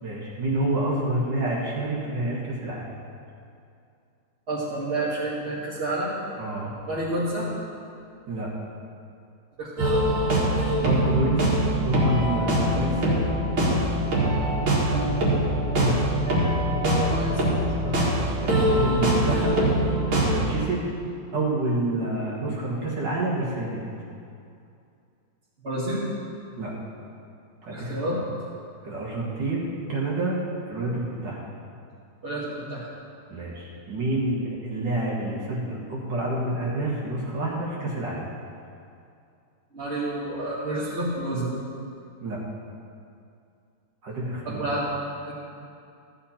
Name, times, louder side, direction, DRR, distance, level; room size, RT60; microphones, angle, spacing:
voice 1, 0.0-2.9 6.4-6.7 8.3-8.5 10.8-11.5 11.8-13.2 15.7-15.9 17.8-18.0 18.3-19.6 20.2-20.9 21.3-23.8 26.6-26.7 27.6-28.2 28.8-30.4 30.7-31.4 33.3-38.3 42.2-42.4 44.0-44.6, right 1 dB, 65° right, -4 dB, 2.2 m, -28 dB
voice 2, 4.5-6.2 6.8-7.5 9.6-10.0 16.8-17.4 25.6-26.0 27.6-28.2 32.2-32.9 39.7-41.5 44.4-44.9 45.2-45.3, right 1 dB, 35° right, -9 dB, 1.7 m, -29 dB
sound 1, 9.8-20.4, right 1 dB, 85° right, 2.8 m, -23 dB
13.5 x 8.2 x 4.3 m, 2.5 s
omnidirectional pair, 2.1 m